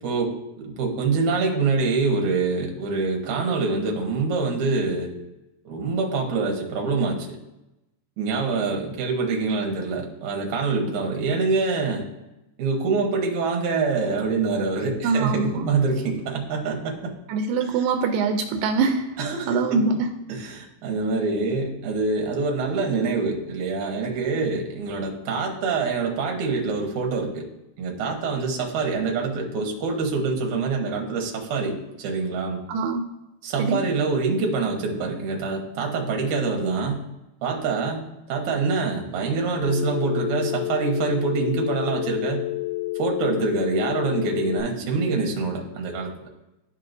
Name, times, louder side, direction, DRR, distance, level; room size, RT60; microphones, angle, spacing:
voice 1, 0.0-5.1 5.7-7.3 8.2-12.0 12.6-17.1 17.6-17.7 19.2-19.9 20.3-27.5 27.8-32.6 33.4-37.0 37.4-38.0 38.3-42.4 43.0-46.3, right 4 dB, 70° right, 1 dB, 2.4 m, -25 dB
voice 2, 15.0-15.7 17.3-19.1 19.5-20.1 32.7-33.0 33.6-33.8, right 4 dB, 85° right, 5 dB, 2.3 m, -23 dB
Telephone, 39.6-44.6, left 19 dB, 65° left, 2.6 m, -29 dB
12.5 x 4.6 x 2.6 m, 0.95 s
omnidirectional pair, 3.9 m